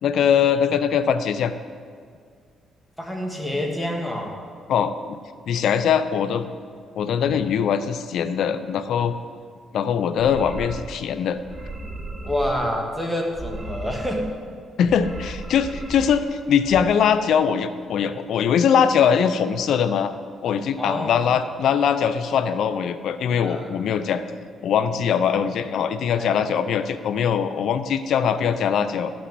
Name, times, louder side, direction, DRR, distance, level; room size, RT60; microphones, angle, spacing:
voice 1, 0.0-1.5 4.7-5.2 5.5-6.5 7.0-9.1 9.7-11.4 14.8-20.1 20.4-24.2 24.6-29.1, left 7 dB, 70° left, 12 dB, 0.6 m, -21 dB
voice 2, 3.0-4.4 12.2-14.3 20.8-21.4 23.4-23.7 26.2-26.4, left 1 dB, 5° left, 0 dB, 2.0 m, -27 dB
sound 1, 10.1-11.0 11.3-12.7 13.2-14.4 14.8-16.2 16.5-16.8, right 2 dB, 20° right, 2.0 m, -36 dB
13.0 x 6.3 x 7.6 m, 2.1 s
cardioid pair, 90°, 0 cm